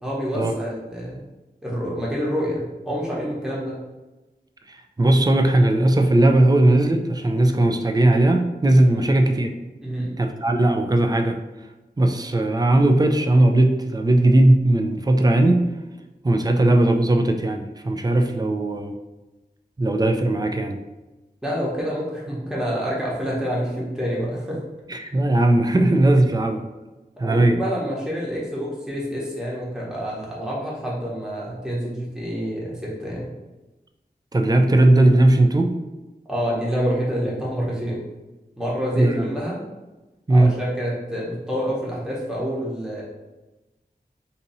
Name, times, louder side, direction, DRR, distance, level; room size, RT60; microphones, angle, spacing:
voice 1, 0.0-1.2 1.6-3.8 8.9-9.1 9.8-10.2 21.4-24.6 27.2-33.3 36.3-38.1 38.6-39.6 40.3-43.0, equal, 5° right, -6 dB, 1.0 m, -27 dB
voice 2, 4.7-9.5 10.2-11.4 12.0-15.7 16.2-18.9 19.8-20.8 24.9-26.6 27.2-27.6 34.3-35.8 39.0-39.3 40.3-40.5, right 1 dB, 25° right, 5 dB, 0.3 m, -18 dB
2.7 x 2.6 x 4.0 m, 1.1 s
wide cardioid pair, 60°, 17 cm